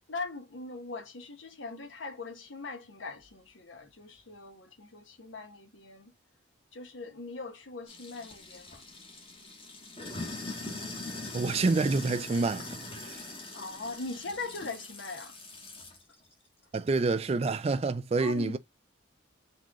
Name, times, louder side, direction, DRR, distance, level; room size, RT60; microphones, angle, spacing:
voice 1, 0.1-6.1 6.7-8.8 13.5-15.4 18.2-18.6, left 3 dB, 75° left, 1.1 m, -41 dB
Sink (filling or washing), 7.9-16.0, left 2 dB, 30° left, 1.2 m, -42 dB
voice 2, 11.3-12.6 13.1-13.2 16.7-18.6, right 3 dB, 30° right, 0.3 m, -27 dB
4.2 x 3.1 x 3.6 m
head